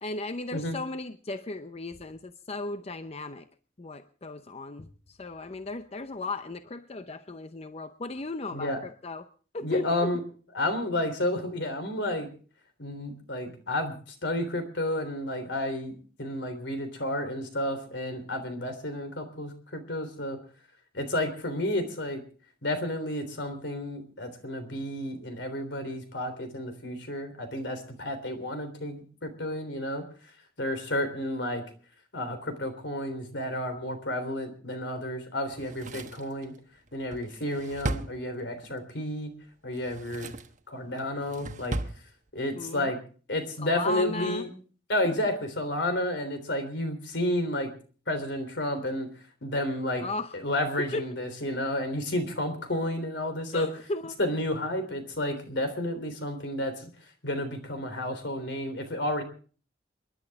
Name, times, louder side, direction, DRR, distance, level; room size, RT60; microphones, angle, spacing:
voice 1, 0.0-3.5 3.8-9.3 9.5-10.1 42.6-42.9 43.6-44.4 45.0-45.2 50.0-50.3 50.9-51.0 53.5-54.2, left 2 dB, 35° left, 10 dB, 0.6 m, -35 dB
voice 2, 9.6-10.2 10.5-12.3 12.8-20.4 20.9-22.2 22.6-30.0 30.6-31.6 32.1-36.5 36.9-39.3 39.6-40.3 40.7-41.8 42.3-43.0 43.3-44.5 44.9-47.7 48.1-49.1 49.4-50.1 50.3-53.7 54.2-56.9 57.2-59.2, left 1 dB, 75° left, 8 dB, 3.5 m, -31 dB
Drawer open or close, 35.5-38.8 39.7-40.6 41.0-42.0 42.3-42.4, right 2 dB, 45° right, 1.0 m, -36 dB
28.5 x 11.0 x 3.6 m, 0.40 s
head